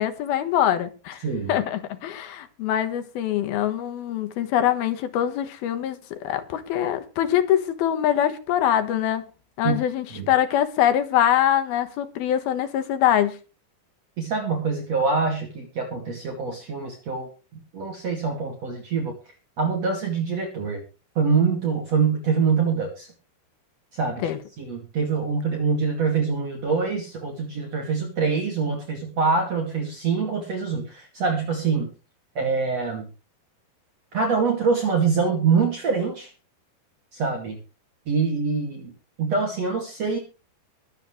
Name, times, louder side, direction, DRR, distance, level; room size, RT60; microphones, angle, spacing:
voice 1, 0.0-1.2 1.5-9.3 9.6-13.4 24.2-24.4, left 11 dB, 70° left, 3.2 m, -23 dB
voice 2, 1.2-1.5 9.6-9.8 10.1-10.3 14.2-17.3 17.7-19.1 19.6-20.8 21.2-23.1 23.9-24.3 24.6-31.9 32.3-33.1 34.1-36.3 37.1-37.6 38.1-38.9 39.2-40.2, right 5 dB, 45° right, 3.0 m, -24 dB
22.5 x 8.7 x 3.3 m
omnidirectional pair, 4.8 m